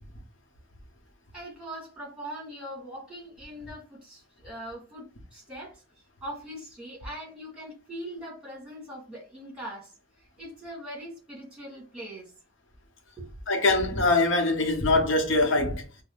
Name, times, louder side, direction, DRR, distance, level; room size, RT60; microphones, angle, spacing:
voice 1, 1.3-12.3 13.2-13.3, right 1 dB, 5° right, 1.9 m, -41 dB
voice 2, 13.5-15.8, left 2 dB, 65° left, 1.0 m, -23 dB
5.4 x 2.2 x 2.5 m
head